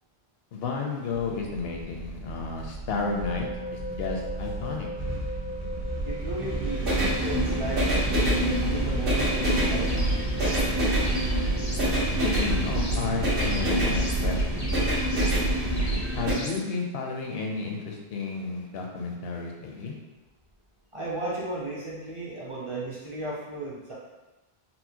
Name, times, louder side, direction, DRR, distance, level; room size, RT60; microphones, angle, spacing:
voice 1, 0.5-4.9 12.2-14.7 16.1-19.9, left 4 dB, 75° left, 1 dB, 0.8 m, -32 dB
sound 1, 1.2-16.3, right 1 dB, 60° right, 1.4 m, -26 dB
sound 2, 2.9-12.1, left 1 dB, 90° right, 0.9 m, -39 dB
voice 2, 6.0-10.0 20.9-23.9, right 2 dB, 35° right, -7 dB, 0.6 m, -35 dB
sound 3, 9.9-10.7 11.0-11.9 12.2-13.1 13.4-14.2 14.6-15.4 15.8-16.6, left 1 dB, 25° left, 0.4 m, -40 dB
4.2 x 2.1 x 2.8 m, 1.1 s
omnidirectional pair, 1.0 m